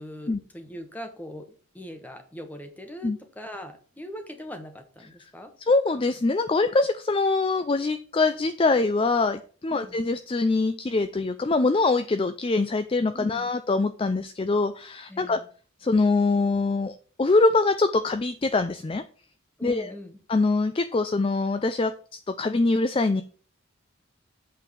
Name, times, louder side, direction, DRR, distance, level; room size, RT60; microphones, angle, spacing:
voice 1, 0.0-5.5 9.7-10.0 13.1-13.5 15.1-15.5 19.6-20.2, equal, 10° left, 5 dB, 1.2 m, -41 dB
voice 2, 5.7-15.4 15.8-19.0 19.6-19.9 20.3-23.2, left 3 dB, 25° left, 9 dB, 0.4 m, -24 dB
8.3 x 4.0 x 6.5 m, 0.41 s
head